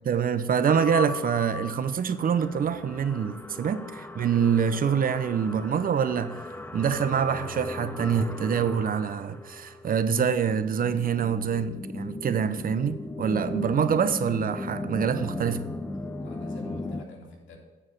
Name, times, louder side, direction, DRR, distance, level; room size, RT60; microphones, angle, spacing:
voice 1, 0.1-15.7, right 7 dB, 45° right, 0.6 m, -26 dB
sound 1, 0.7-17.0, left 2 dB, 10° left, 0.5 m, -37 dB
voice 2, 16.1-17.6, equal, 75° left, 2.3 m, -46 dB
8.9 x 4.6 x 7.0 m
cardioid pair, 90°, 20 cm